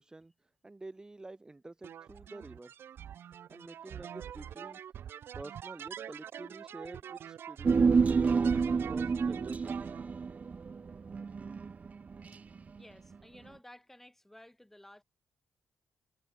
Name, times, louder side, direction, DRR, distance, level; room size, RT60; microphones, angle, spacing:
voice 1, 0.0-2.8 3.5-4.8 5.3-9.8, right 2 dB, 20° right, 1.7 m, -49 dB
sound 1, 1.8-10.0, right 9 dB, 70° right, 1.3 m, -45 dB
Human voice, 7.6-12.3 12.6-12.7, right 5 dB, 35° right, 0.5 m, -28 dB
voice 2, 12.8-15.0, left 1 dB, 5° left, 7.0 m, -54 dB
cardioid pair, 85°, 4 cm